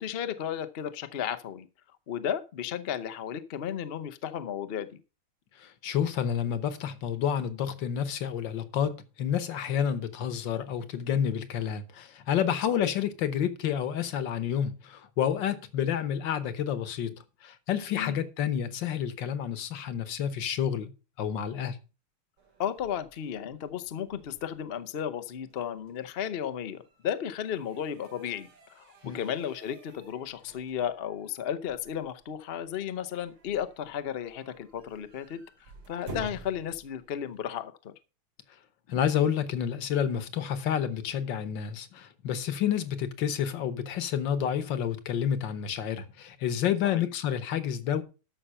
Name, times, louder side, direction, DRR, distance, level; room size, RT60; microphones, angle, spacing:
voice 1, 0.0-1.7 2.1-5.0 12.7-12.9 17.9-18.2 22.6-35.4 35.9-37.9 46.8-47.0, left 9 dB, 85° left, 0.5 m, -34 dB
voice 2, 5.6-20.9 21.2-21.8 29.0-29.2 38.9-48.0, left 9 dB, 65° left, 1.6 m, -29 dB
sound 1, 22.4-37.4, right 2 dB, 85° right, 3.4 m, -51 dB
12.5 x 5.6 x 5.5 m
omnidirectional pair, 2.3 m